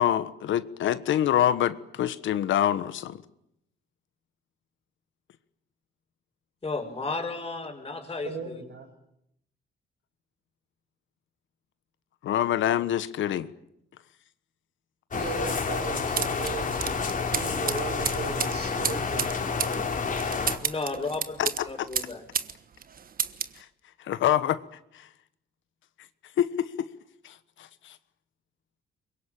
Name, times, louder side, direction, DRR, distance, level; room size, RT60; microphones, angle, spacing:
voice 1, 0.0-3.2 12.2-13.5 21.4-21.9 23.6-23.7 24.0-24.6 24.9-25.1 26.4-26.9 27.2-27.9, left 11 dB, 75° left, 1.3 m, -26 dB
voice 2, 6.6-8.6 20.6-22.2, left 3 dB, 25° left, 5.3 m, -33 dB
voice 3, 8.3-8.9 15.1-16.8 17.3-19.3 19.9-20.0, right 5 dB, 65° right, 5.6 m, -37 dB
sound 1, 15.1-20.6, left 5 dB, 40° left, 3.7 m, -29 dB
sound 2, 16.2-22.5 22.8-23.6, right 7 dB, 45° right, 1.4 m, -32 dB
24.0 x 22.5 x 8.9 m
cardioid pair, 90°, 20 cm